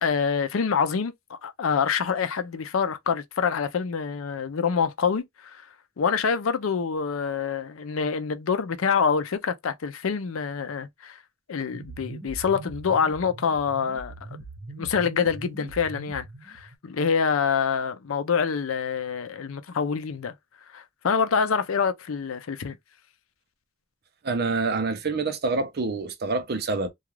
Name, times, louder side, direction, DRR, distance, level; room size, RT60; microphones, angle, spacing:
voice 1, 0.0-5.6 6.0-11.2 11.5-14.1 14.8-20.3 20.7-22.8, left 6 dB, 85° left, 0.5 m, -26 dB
sound 1, 11.7-16.8, right 2 dB, 85° right, 1.0 m, -41 dB
voice 2, 24.2-26.9, right 3 dB, 50° right, 0.6 m, -26 dB
2.4 x 2.3 x 3.0 m
head